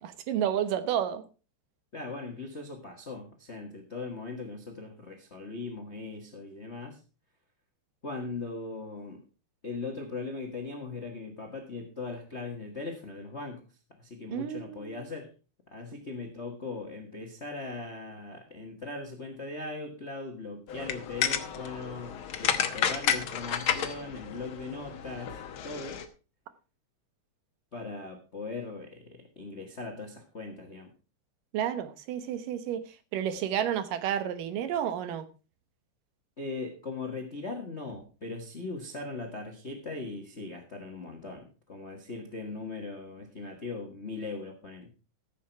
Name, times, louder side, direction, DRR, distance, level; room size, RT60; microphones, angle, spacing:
voice 1, 0.0-1.2 14.3-15.0 31.5-35.3, right 10 dB, 80° right, 2.7 m, -31 dB
voice 2, 1.9-7.0 8.0-9.2 9.6-13.6 14.0-15.3 15.7-26.0 27.7-30.9 36.4-44.9, left 3 dB, 45° left, 0.8 m, -39 dB
sound 1, 20.7-26.1, left 8 dB, 70° left, 1.2 m, -31 dB
14.5 x 7.5 x 4.6 m
omnidirectional pair, 3.9 m